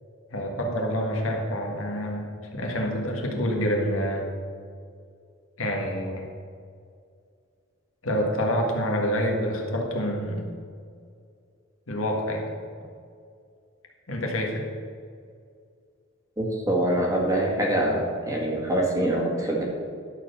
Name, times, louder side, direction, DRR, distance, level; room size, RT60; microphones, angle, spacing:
voice 1, 0.3-4.3 5.6-6.2 8.0-10.4 11.9-12.5 14.1-14.7, equal, 80° left, 0 dB, 1.7 m, -27 dB
voice 2, 16.4-19.6, right 1 dB, 15° right, -2 dB, 1.7 m, -24 dB
11.5 x 4.6 x 6.7 m, 2.2 s
head